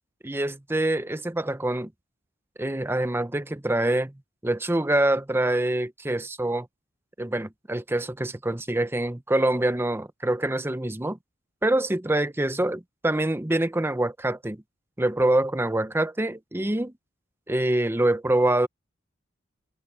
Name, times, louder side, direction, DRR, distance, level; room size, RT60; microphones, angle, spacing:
voice 1, 0.2-1.9 2.6-4.1 4.4-6.7 7.2-11.2 11.6-14.6 15.0-16.9 17.5-18.7, right 1 dB, 10° right, 0.7 m, -25 dB
head